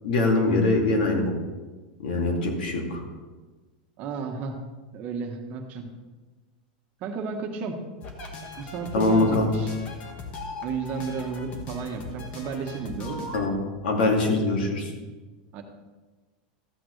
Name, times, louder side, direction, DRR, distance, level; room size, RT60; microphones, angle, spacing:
voice 1, 0.0-1.3 2.0-3.0 8.9-9.5 13.3-13.5 13.8-14.9, left 2 dB, 85° left, 0 dB, 2.6 m, -23 dB
voice 2, 4.0-4.6 4.9-5.8 7.0-7.8 8.6-9.8 10.6-13.3 15.5-15.6, right 5 dB, 35° right, 3 dB, 1.2 m, -32 dB
sound 1, 8.0-13.5, left 2 dB, 30° left, 1.4 m, -39 dB
13.5 x 8.7 x 3.3 m, 1.3 s
supercardioid pair, 160°, 5 cm